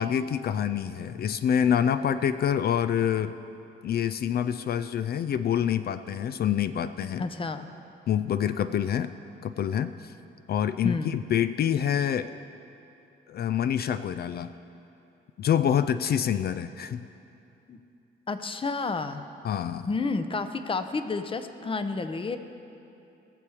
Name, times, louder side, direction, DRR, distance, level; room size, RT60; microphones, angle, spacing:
voice 1, 0.0-3.3 3.8-7.2 8.1-9.1 9.4-10.1 10.5-12.3 13.3-14.5 15.4-17.1 19.4-19.9, left 9 dB, 50° left, 12 dB, 0.4 m, -26 dB
voice 2, 7.2-7.7 10.8-11.1 17.7-17.8 18.3-19.2 19.9-22.4, left 3 dB, 25° left, 9 dB, 0.7 m, -30 dB
18.5 x 6.9 x 4.9 m, 2.7 s
cardioid pair, 90°, 20 cm